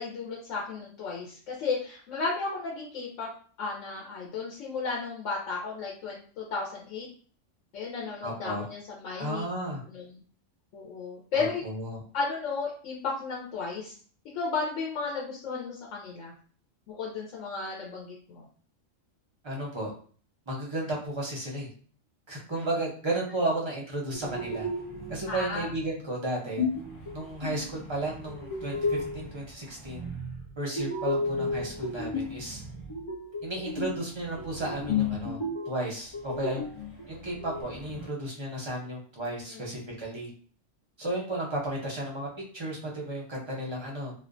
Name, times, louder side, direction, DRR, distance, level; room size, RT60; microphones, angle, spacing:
voice 1, 0.0-3.3 3.6-7.1 7.7-9.4 9.8-10.2 10.7-11.6 12.1-13.9 14.3-16.3 16.9-18.5 25.3-25.7 39.5-39.6, left 4 dB, 75° left, -4 dB, 1.0 m, -34 dB
voice 2, 8.2-8.7 9.2-9.8 11.3-12.0 19.4-19.9 20.5-21.7 22.3-24.7 25.1-26.6 27.1-30.1 30.6-32.6 33.4-35.4 35.7-36.6 37.1-40.3 41.0-42.3 42.5-44.1, right 1 dB, 35° right, -3 dB, 0.4 m, -33 dB
sound 1, 24.1-25.2 26.6-27.7 28.2-29.3 30.8-32.4 32.9-34.0 34.4-35.9 36.1-37.6, left 3 dB, 55° left, 0.3 m, -32 dB
sound 2, 24.2-26.1 26.5-30.6 31.0-35.6 36.0-38.1, right 3 dB, 30° left, 0.9 m, -46 dB
2.4 x 2.2 x 2.4 m, 0.44 s
omnidirectional pair, 1.3 m